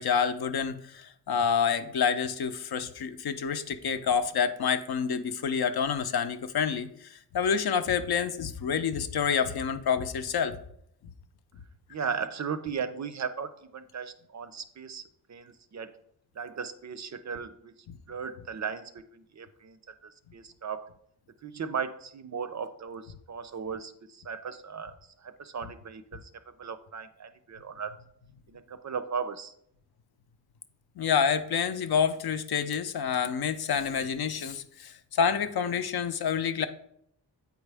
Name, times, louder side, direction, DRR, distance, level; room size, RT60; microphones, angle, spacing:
voice 1, 0.0-10.6 17.9-18.0 31.0-36.7, left 7 dB, 60° left, 10 dB, 0.6 m, -28 dB
voice 2, 11.9-15.0 15.3-16.0 16.4-17.7 18.1-20.9 21.4-26.3 26.6-27.9 28.5-29.5, right 6 dB, 45° right, 12 dB, 0.5 m, -37 dB
8.2 x 4.6 x 3.4 m, 0.71 s
wide cardioid pair, 100°, 42 cm